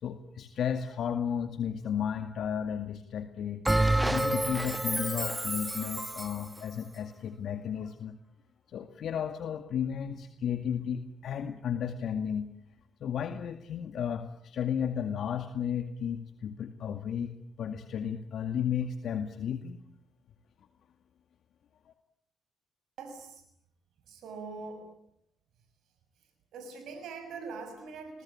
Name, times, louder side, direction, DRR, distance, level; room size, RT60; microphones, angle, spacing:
voice 1, 0.0-3.6 4.0-8.2 8.7-12.5 13.0-17.3 17.6-19.8 21.9-22.0, left 8 dB, 65° left, 7 dB, 2.1 m, -33 dB
Bell, 3.7-6.4, right 1 dB, 10° right, 1.4 m, -28 dB
voice 2, 23.0-23.4 24.1-24.9 26.5-28.2, right 4 dB, 70° right, 6 dB, 6.3 m, -42 dB
28.5 x 21.5 x 8.7 m, 0.76 s
supercardioid pair, 60°, 0 cm